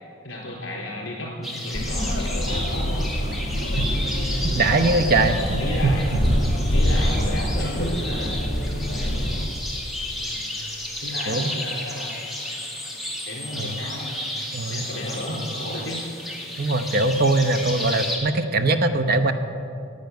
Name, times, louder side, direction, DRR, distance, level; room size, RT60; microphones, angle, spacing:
voice 1, 0.2-3.0 4.7-6.1 6.7-8.5 8.9-9.2 10.2-10.5 11.0-12.1 13.3-14.1 14.7-16.0, left 1 dB, 70° left, -3 dB, 3.9 m, -34 dB
sound 1, 1.4-18.2, left 1 dB, ahead, 1.8 m, -33 dB
sound 2, 1.7-9.4, equal, 50° left, 2.5 m, -25 dB
voice 2, 4.4-6.2 11.3-11.5 13.5-13.7 14.5-14.9 16.6-19.3, right 2 dB, 50° right, 8 dB, 0.8 m, -22 dB
10.5 x 8.1 x 9.3 m, 2.5 s
head